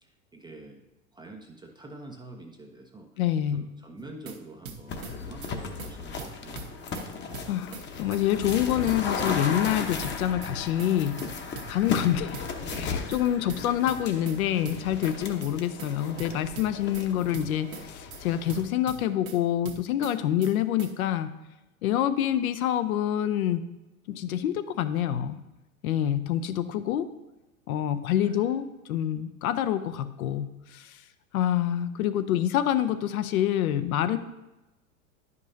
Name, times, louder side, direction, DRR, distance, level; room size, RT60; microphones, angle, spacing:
voice 1, 0.0-0.9 1.1-3.2 3.5-7.2 28.2-28.5, right 2 dB, 10° right, 2 dB, 0.5 m, -46 dB
voice 2, 3.2-3.6 7.5-11.2 11.7-12.5 12.7-21.3 21.8-23.6 24.1-25.4 25.8-27.1 27.7-31.0 31.3-34.2, left 11 dB, 70° left, 12 dB, 0.7 m, -27 dB
sound 1, 4.0-4.4 4.7-5.1 5.4-5.5 5.8-5.9 6.2-7.1 7.3-7.8 8.1-8.2 8.5-9.4 9.7-10.1 10.4-10.5 10.8-10.9 11.2-12.1 12.3-12.8 13.1-13.2 13.5-14.4 14.7-15.1 15.4-15.5 15.8-15.9 16.2-17.1 17.3-17.8 18.1-18.2 18.5-19.4 19.7-20.1 20.4-20.5 20.8-20.9, right 6 dB, 70° right, 1.2 m, -41 dB
sound 2, 4.9-18.6, left 5 dB, 25° left, 0.8 m, -36 dB
10.5 x 5.4 x 2.7 m, 1.0 s
hypercardioid pair, 90°, 44 cm